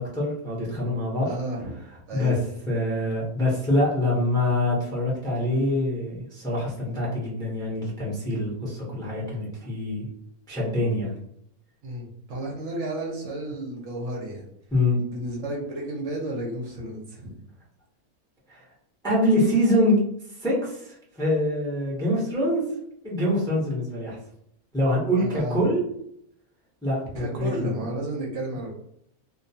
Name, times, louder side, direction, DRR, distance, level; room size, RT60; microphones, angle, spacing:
voice 1, 0.0-1.3 2.1-2.4 2.7-10.1 10.5-11.1 14.7-15.0 18.5-18.6 19.0-19.9 20.4-22.6 23.0-24.2 24.7-25.8 26.8-27.7, left 1 dB, 5° left, -5 dB, 0.4 m, -25 dB
voice 2, 1.2-1.7 2.1-2.4 11.8-14.5 15.0-17.4 25.2-25.6 27.1-28.7, right 1 dB, 65° right, -1 dB, 0.8 m, -32 dB
2.3 x 2.2 x 2.7 m, 0.71 s
omnidirectional pair, 1.5 m